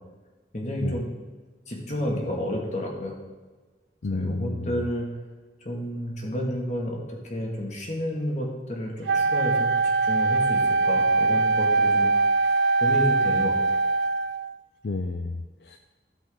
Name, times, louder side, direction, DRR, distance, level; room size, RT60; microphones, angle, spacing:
voice 1, 0.5-1.1 1.7-3.1 4.1-5.1 5.6-9.8 10.0-12.1 12.8-13.6, equal, 40° left, -1 dB, 1.9 m, -30 dB
voice 2, 4.0-4.8 14.8-15.8, left 3 dB, 65° left, 6 dB, 0.5 m, -31 dB
Wind instrument woodwind instrument, 9.1-14.5, right 3 dB, 75° right, 0.4 m, -22 dB
15.5 x 5.2 x 3.8 m, 1.3 s
head